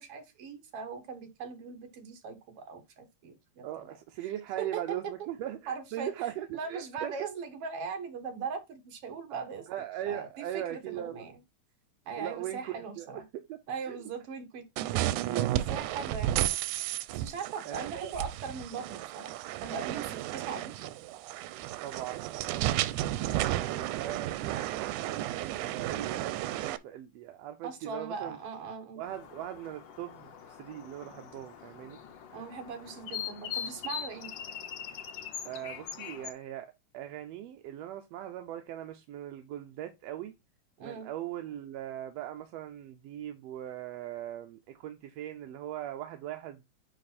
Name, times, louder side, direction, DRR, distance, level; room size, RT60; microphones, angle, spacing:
voice 1, 0.0-5.1 5.7-6.1 6.5-9.7 10.1-11.4 12.1-13.2 13.7-14.6 14.9-16.5 17.1-19.3 19.6-20.9 27.6-29.0 32.3-34.3 40.8-41.1, right 5 dB, 55° right, 2.2 m, -40 dB
voice 2, 3.6-7.3 9.3-11.3 12.2-13.6 13.9-14.0 15.9-16.0 17.7-18.1 21.8-28.4 29.0-32.0 35.4-40.3 40.8-46.6, right 12 dB, 75° right, 1.7 m, -40 dB
sound 1, 14.8-26.8, right 14 dB, 90° right, 2.0 m, -33 dB
sound 2, 29.0-36.3, left 8 dB, 75° left, 1.0 m, -42 dB
10.0 x 3.4 x 4.1 m
omnidirectional pair, 3.4 m